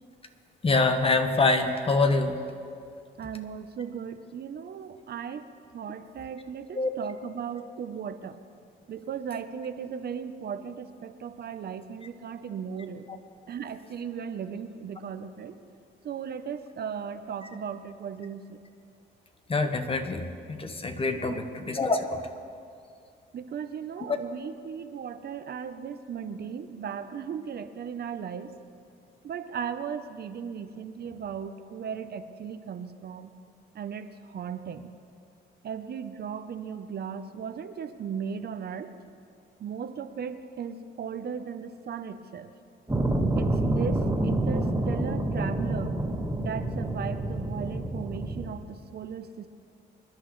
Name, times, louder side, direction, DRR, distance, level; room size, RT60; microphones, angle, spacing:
voice 1, 0.6-2.4 6.7-6.9 13.1-13.2 19.5-22.2 24.0-24.1, left 3 dB, 30° left, 7 dB, 1.1 m, -25 dB
voice 2, 3.2-5.5 5.7-8.4 8.9-13.1 13.5-15.6 16.0-18.6 21.2-21.4 23.3-28.5 29.2-33.3 33.7-34.9 35.6-38.9 39.6-42.5 43.4-46.0 46.4-49.5, right 7 dB, 55° right, 10 dB, 0.7 m, -37 dB
sound 1, 42.9-48.5, right 1 dB, 15° right, 2.2 m, -28 dB
26.5 x 10.5 x 3.2 m, 2.4 s
cardioid pair, 90°, 20 cm